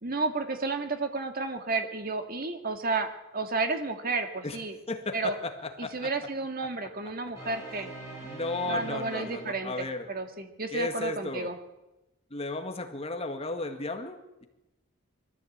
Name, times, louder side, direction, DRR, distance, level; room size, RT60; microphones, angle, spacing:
voice 1, 0.0-4.7 5.1-5.3 5.8-7.9 8.7-11.6, right 3 dB, 45° right, 6 dB, 2.1 m, -32 dB
voice 2, 4.9-6.1 8.2-10.1 10.7-11.5 12.3-14.5, left 2 dB, 30° left, 6 dB, 1.8 m, -34 dB
sound 1, 7.3-10.1, right 2 dB, 15° right, 7.3 m, -43 dB
22.0 x 14.5 x 8.7 m, 0.99 s
head